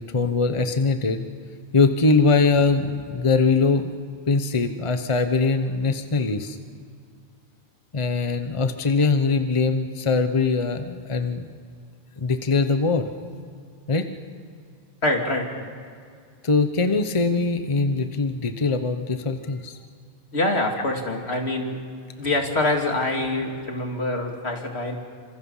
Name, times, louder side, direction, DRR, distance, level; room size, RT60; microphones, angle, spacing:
voice 1, 0.1-1.2 1.7-3.9 4.3-6.6 7.9-11.5 12.2-13.1 13.9-14.1 16.4-19.8, left 4 dB, 30° left, 8 dB, 1.0 m, -22 dB
voice 2, 15.0-15.5 20.3-21.8 22.2-25.0, left 2 dB, 80° left, 2 dB, 2.9 m, -25 dB
27.5 x 26.5 x 5.6 m, 2.2 s
omnidirectional pair, 1.1 m